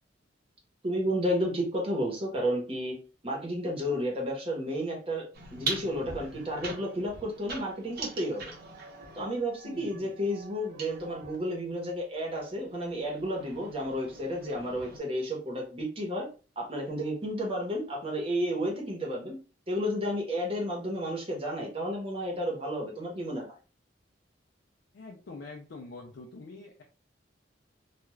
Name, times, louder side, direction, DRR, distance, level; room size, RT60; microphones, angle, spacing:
voice 1, 0.8-3.0 3.2-5.2 5.5-8.5 9.1-16.3 16.6-19.4 19.7-23.5, equal, 30° right, -1 dB, 1.0 m, -32 dB
sound 1, 5.3-11.4 12.3-15.0, right 3 dB, 55° right, 0.9 m, -41 dB
voice 2, 9.6-10.1 24.9-26.8, left 3 dB, 65° left, 1 dB, 0.4 m, -45 dB
2.3 x 2.3 x 3.1 m, 0.36 s
head